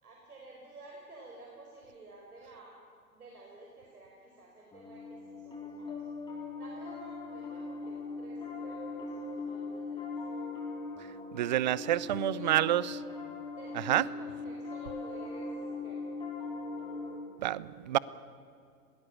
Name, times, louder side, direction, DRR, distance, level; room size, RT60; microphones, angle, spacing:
voice 1, 0.0-2.8 3.1-5.9 6.2-10.4 12.1-12.7 13.5-16.0, right 2 dB, 75° right, -1 dB, 4.5 m, -52 dB
Piano, 4.7-17.2, left 3 dB, 10° left, 3.7 m, -40 dB
voice 2, 11.3-12.8 13.9-14.0 17.4-18.0, right 13 dB, 30° right, 21 dB, 0.5 m, -28 dB
21.5 x 17.5 x 8.5 m, 2.4 s
figure-of-eight pair, 110°, 45 cm